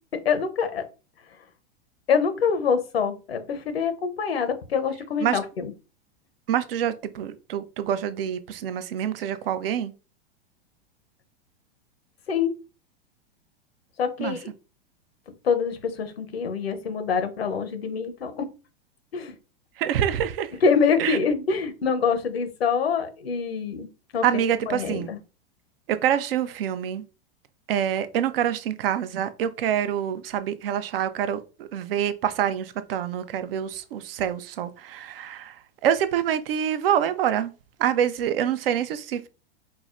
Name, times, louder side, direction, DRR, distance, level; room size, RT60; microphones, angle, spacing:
voice 1, 0.2-0.8 2.1-5.7 12.3-12.5 14.0-14.5 15.4-18.5 19.1-19.3 20.6-23.9 24.1-25.2, left 6 dB, 90° left, 0.8 m, -25 dB
voice 2, 6.5-9.9 14.2-14.4 19.8-20.5 21.0-21.2 24.2-25.1 25.9-27.0 27.7-37.5 37.8-39.3, right 9 dB, 70° right, 0.5 m, -26 dB
4.6 x 2.1 x 2.4 m
hypercardioid pair, 105°, 30 cm